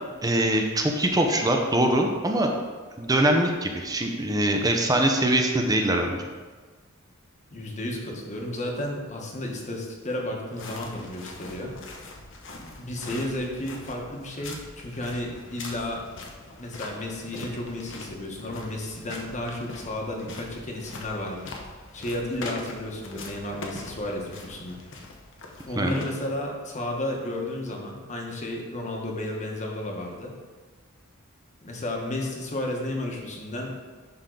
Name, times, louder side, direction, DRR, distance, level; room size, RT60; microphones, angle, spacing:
voice 1, 0.2-2.5 3.0-6.3 25.8-26.0, right 1 dB, 20° right, 2 dB, 0.7 m, -23 dB
voice 2, 7.5-11.8 12.6-16.0 16.6-24.8 25.7-30.4 31.6-33.8, left 1 dB, 35° left, 0 dB, 1.2 m, -33 dB
sound 1, 10.6-26.6, left 2 dB, 65° left, 1.0 m, -42 dB
11.0 x 3.8 x 3.9 m, 1.4 s
head